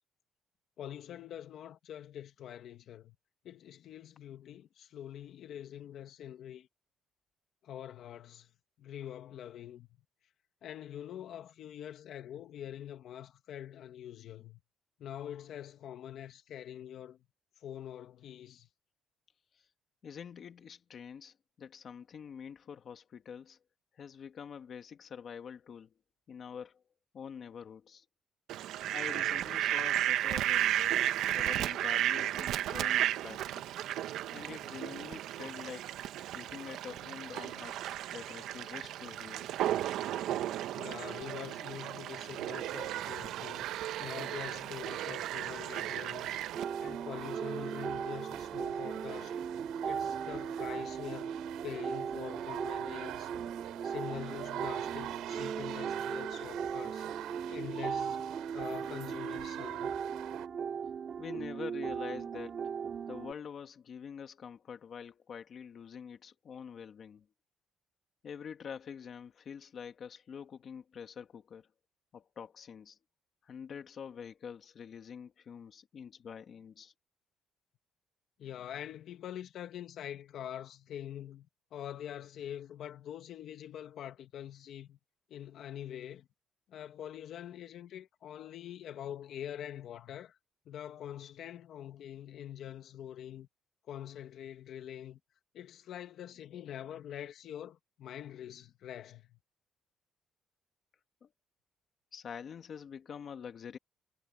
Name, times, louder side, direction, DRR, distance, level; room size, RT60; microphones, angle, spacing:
voice 1, 0.8-3.2 3.4-6.7 7.6-8.5 8.8-9.9 10.6-14.6 15.0-17.2 17.6-18.7 40.7-43.7 44.0-46.4 46.8-49.4 49.8-51.3 51.6-53.3 53.8-57.1 57.5-59.9 78.4-85.0 85.3-86.3 86.7-90.4 90.7-93.5 93.9-95.2 95.5-99.4, left 10 dB, 55° left, 1.8 m, -45 dB
voice 2, 20.0-23.6 23.9-25.9 26.3-26.8 27.1-28.0 28.9-31.0 31.3-33.6 34.3-35.9 36.3-39.5 61.2-62.6 63.1-67.2 68.2-71.7 72.1-73.0 73.4-76.9 101.2-101.3 102.1-103.8, left 7 dB, 40° left, 1.7 m, -46 dB
Fowl, 28.5-46.6, right 12 dB, 70° right, 1.1 m, -34 dB
sound 1, 42.6-60.5, right 14 dB, 85° right, 3.4 m, -43 dB
sound 2, 46.5-63.3, right 7 dB, 35° right, 3.2 m, -38 dB
cardioid pair, 165°, 0 cm